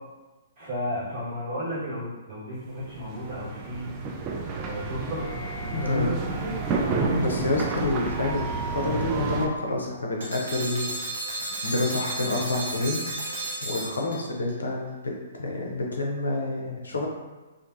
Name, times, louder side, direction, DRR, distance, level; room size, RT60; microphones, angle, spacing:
voice 1, 0.6-3.9 4.5-6.5, equal, 50° right, -9 dB, 1.4 m, -33 dB
sound 1, 2.8-9.5, right 3 dB, 30° right, 0.3 m, -30 dB
voice 2, 5.7-6.1 7.2-10.9 11.6-13.0 13.6-17.1, left 2 dB, 75° left, 0 dB, 0.5 m, -28 dB
sound 2, 10.2-14.5, right 1 dB, 70° right, 0.9 m, -33 dB
2.4 x 2.2 x 2.5 m, 1.2 s
figure-of-eight pair, 125°, 0 cm